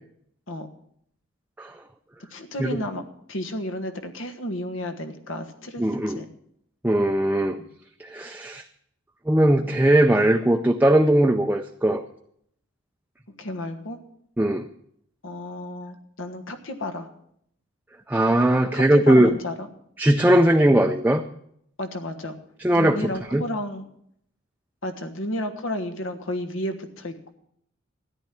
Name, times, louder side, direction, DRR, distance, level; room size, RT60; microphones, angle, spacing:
voice 1, 2.3-6.3 7.6-7.7 9.6-9.9 13.4-14.0 15.2-17.1 18.7-19.7 21.8-22.3 22.7-23.8 24.8-27.3, left 1 dB, 80° left, 7 dB, 1.4 m, -32 dB
voice 2, 5.8-6.2 6.8-7.6 8.0-8.6 9.3-12.0 14.4-14.7 18.1-19.3 20.0-21.2 22.6-23.4, right 1 dB, 10° right, 5 dB, 0.4 m, -19 dB
13.5 x 10.0 x 6.0 m, 0.70 s
head